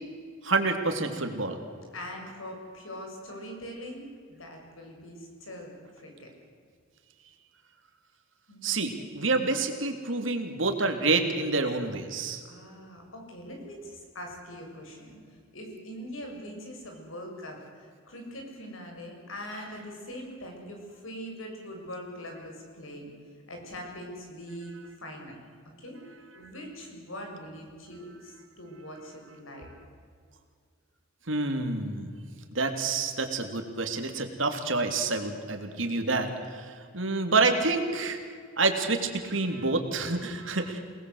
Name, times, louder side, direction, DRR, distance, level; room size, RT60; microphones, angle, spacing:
voice 1, 0.4-1.6 8.6-12.4 31.3-32.1 32.5-38.2 38.6-40.8, right 3 dB, 70° right, 5 dB, 3.1 m, -28 dB
voice 2, 1.9-6.3 8.5-8.9 12.4-23.1 23.5-25.4 25.8-29.7, equal, 85° left, 1 dB, 7.0 m, -42 dB
28.0 x 19.5 x 8.1 m, 2.1 s
head